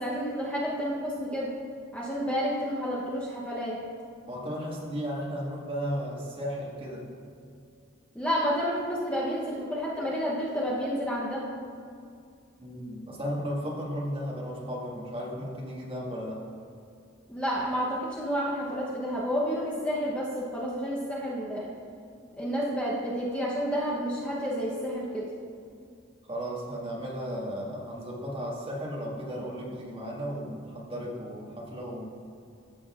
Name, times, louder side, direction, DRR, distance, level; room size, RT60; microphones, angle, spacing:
voice 1, 0.0-1.5 1.9-3.8 8.1-11.5 17.3-21.7 22.3-25.3, equal, 5° left, -5 dB, 0.8 m, -30 dB
voice 2, 4.3-7.1 12.6-16.4 26.3-32.0, equal, 25° right, -4 dB, 1.7 m, -35 dB
14.0 x 7.8 x 2.4 m, 2.4 s
head